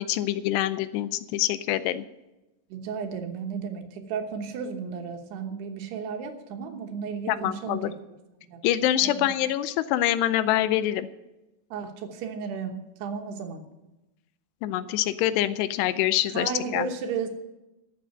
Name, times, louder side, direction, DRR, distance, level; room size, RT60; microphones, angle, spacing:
voice 1, 0.0-2.0 7.3-7.9 8.6-11.1 14.6-16.9, left 13 dB, 85° left, 14 dB, 2.7 m, -25 dB
voice 2, 2.7-7.9 8.5-8.6 9.0-9.3 11.7-13.6 16.3-17.3, right 6 dB, 75° right, 5 dB, 3.2 m, -34 dB
13.0 x 7.1 x 8.9 m, 0.99 s
omnidirectional pair, 4.9 m